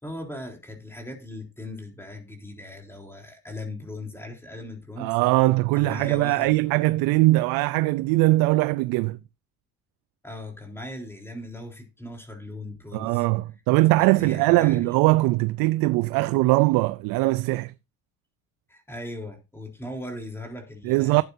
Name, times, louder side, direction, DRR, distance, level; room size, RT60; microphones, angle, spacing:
voice 1, 0.0-5.1 5.7-6.6 10.2-13.2 14.0-14.9 18.7-21.2, left 1 dB, 5° left, 3.6 m, -38 dB
voice 2, 5.0-9.2 12.9-17.7 20.8-21.2, right 20 dB, 90° right, 0.5 m, -21 dB
12.5 x 9.2 x 2.6 m
cardioid pair, 100°, 34 cm